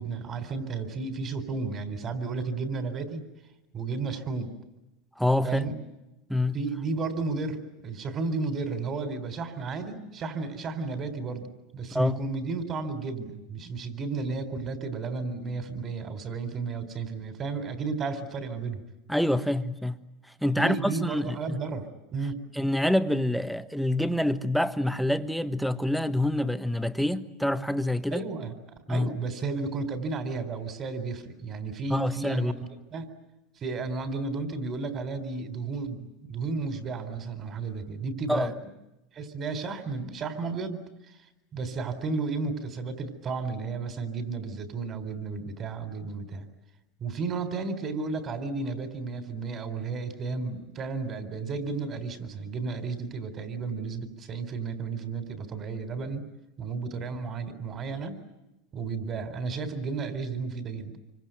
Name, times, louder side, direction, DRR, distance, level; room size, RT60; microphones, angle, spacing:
voice 1, 0.0-3.2 3.7-4.5 5.4-5.8 6.5-18.8 20.5-22.4 28.1-33.1 33.6-38.5 39.1-40.8 41.1-41.2 41.5-46.5 47.0-56.2 56.6-58.2 58.7-60.9, right 4 dB, 35° right, 4.1 m, -33 dB
voice 2, 5.2-5.7 6.3-6.6 11.9-12.2 19.1-20.0 20.4-21.6 22.5-28.2 28.9-29.1 31.9-32.5 38.3-38.5, left 1 dB, ahead, 1.3 m, -26 dB
26.0 x 24.5 x 9.2 m
supercardioid pair, 110°, 0 cm